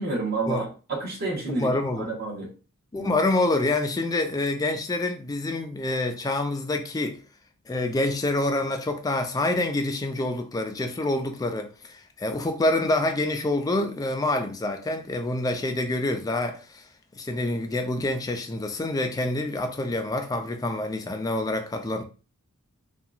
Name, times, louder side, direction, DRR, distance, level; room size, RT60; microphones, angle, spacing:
voice 1, 0.0-2.5 3.0-3.1, right 3 dB, 45° right, 1.1 m, -30 dB
voice 2, 1.6-2.1 2.9-7.2 7.7-16.8 17.1-22.0, left 2 dB, 15° left, 0.3 m, -27 dB
2.8 x 2.3 x 2.4 m
head